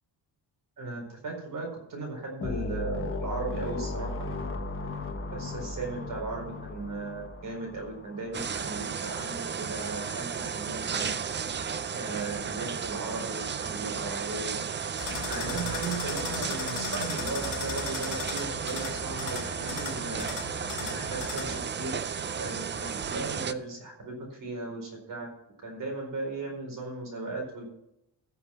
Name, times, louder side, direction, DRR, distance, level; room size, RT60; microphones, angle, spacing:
voice 1, 0.8-4.3 5.3-11.1 11.9-14.6 15.3-22.0 22.4-25.3 25.6-27.6, right 3 dB, 50° right, 1 dB, 4.6 m, -37 dB
sound 1, 2.4-8.9, left 2 dB, 30° left, 1.3 m, -36 dB
sound 2, 8.3-23.5, right 6 dB, 25° right, 0.5 m, -34 dB
sound 3, 15.0-21.6, left 5 dB, 45° left, 3.8 m, -37 dB
15.0 x 7.0 x 5.9 m, 0.81 s
wide cardioid pair, 175°, 41 cm